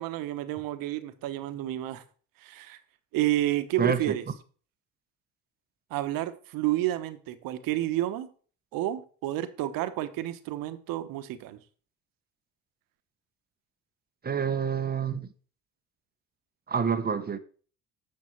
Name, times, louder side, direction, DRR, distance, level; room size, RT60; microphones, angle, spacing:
voice 1, 0.0-2.0 2.4-2.8 3.1-4.2 5.9-8.3 8.7-11.6, right 14 dB, 70° right, 1.2 m, -30 dB
voice 2, 3.8-4.1 14.2-15.3 16.7-17.4, right 6 dB, 25° right, 0.9 m, -27 dB
8.8 x 6.5 x 4.5 m
supercardioid pair, 90°, 36 cm